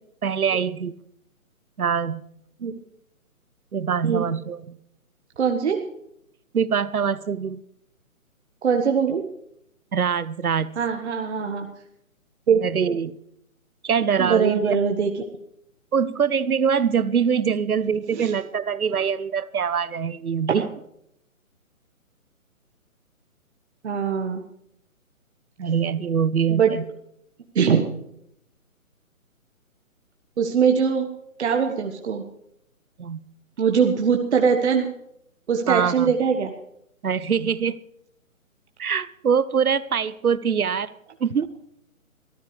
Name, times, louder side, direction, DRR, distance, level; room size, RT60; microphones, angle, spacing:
voice 1, 0.2-0.9 1.8-2.2 3.7-4.8 6.5-7.6 9.9-10.7 12.6-13.2 13.8-14.8 15.9-20.7 25.6-26.9 33.0-33.2 35.7-36.1 37.0-37.8 38.8-40.9 41.2-41.5, right 7 dB, 85° right, 1.0 m, -23 dB
voice 2, 5.4-5.8 8.6-9.2 10.8-11.7 12.5-12.6 14.2-15.1 18.1-18.3 20.5-20.6 23.8-24.4 26.5-26.7 27.5-27.8 30.4-31.1 31.4-32.2 33.6-34.9 35.5-36.5, right 6 dB, 50° right, 1.4 m, -21 dB
22.0 x 14.0 x 3.3 m
hypercardioid pair, 155°, 42 cm